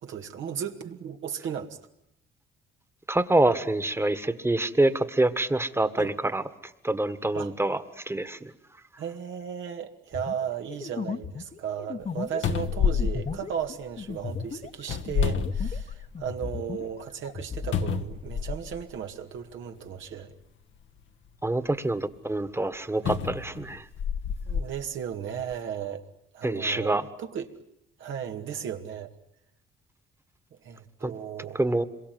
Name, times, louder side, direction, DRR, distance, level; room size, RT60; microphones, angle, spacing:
voice 1, 0.0-1.8 6.0-6.1 7.3-7.5 9.0-20.3 23.0-23.2 24.5-26.1 26.3-27.5 28.0-29.1 30.6-31.6, right 8 dB, 75° right, 5 dB, 2.2 m, -35 dB
voice 2, 3.1-6.4 6.8-8.5 21.4-23.8 26.4-27.1 31.0-31.1 31.5-31.8, right 2 dB, 10° right, 12 dB, 1.6 m, -26 dB
sound 1, 10.1-15.9 16.1-17.8, left 5 dB, 35° left, 1.1 m, -36 dB
sound 2, 12.0-12.1 12.4-14.1 14.8-16.2 16.7-16.8 17.7-18.8 19.8-19.9 23.0-24.7 25.4-25.5, left 6 dB, 75° left, 1.3 m, -28 dB
26.5 x 23.0 x 9.4 m, 0.78 s
cardioid pair, 90°, 20 cm